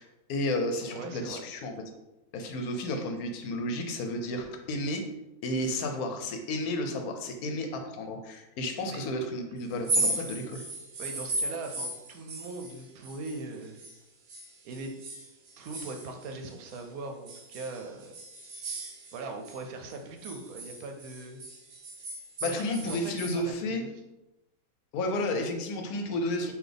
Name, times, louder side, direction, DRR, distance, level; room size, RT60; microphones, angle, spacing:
voice 1, 0.0-1.7 2.3-5.0 5.4-10.6 22.4-23.8 24.9-26.5, left 1 dB, 90° left, 5 dB, 1.1 m, -32 dB
voice 2, 0.8-1.4 8.9-9.0 11.0-13.8 14.6-14.9 15.6-18.1 19.1-21.4 22.4-23.5, right 3 dB, 80° right, 4 dB, 1.0 m, -40 dB
sound 1, 9.7-14.0 14.3-16.8 17.3-19.6 19.9-23.4, right 2 dB, 55° right, 0.6 m, -36 dB
4.0 x 2.7 x 3.3 m, 0.98 s
omnidirectional pair, 1.5 m